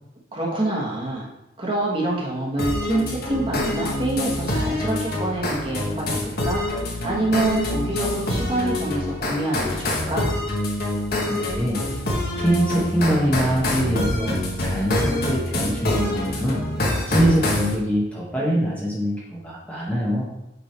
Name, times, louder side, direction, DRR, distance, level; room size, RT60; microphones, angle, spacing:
voice 1, 0.3-1.3 1.6-10.3, right 2 dB, 25° right, -4 dB, 1.6 m, -26 dB
sound 1, 2.6-17.7, left 1 dB, 50° left, 1.3 m, -26 dB
voice 2, 11.3-11.8 12.4-16.6 17.0-20.3, equal, 5° left, -6 dB, 1.3 m, -23 dB
8.0 x 3.9 x 4.5 m, 0.89 s
head